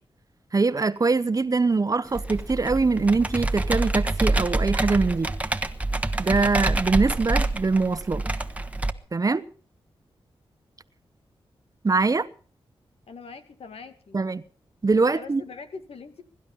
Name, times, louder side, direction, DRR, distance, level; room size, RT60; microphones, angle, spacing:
voice 1, 0.5-5.3 6.2-8.2 9.1-9.4 11.8-12.3 14.1-14.4 14.8-15.4, right 3 dB, 35° right, 1.0 m, -23 dB
Computer keyboard, 2.1-8.9, right 2 dB, 15° right, 1.3 m, -26 dB
voice 2, 13.1-14.2 15.1-16.2, left 4 dB, 80° left, 2.1 m, -42 dB
22.0 x 11.5 x 5.5 m
wide cardioid pair, 80°, 10 cm